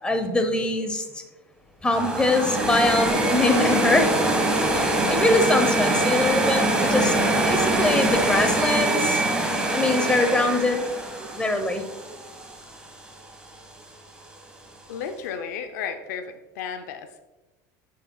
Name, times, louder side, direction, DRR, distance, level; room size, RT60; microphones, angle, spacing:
voice 1, 0.0-1.0 1.8-4.1 4.7-7.1 7.4-9.2 9.7-10.8 11.2-11.8, left 2 dB, 10° left, 7 dB, 1.0 m, -23 dB
sound 1, 1.9-12.9, right 2 dB, 10° right, 1.6 m, -24 dB
voice 2, 14.9-17.2, left 7 dB, 85° left, 7 dB, 0.6 m, -33 dB
10.5 x 6.4 x 2.3 m, 1.1 s
supercardioid pair, 130°, 9 cm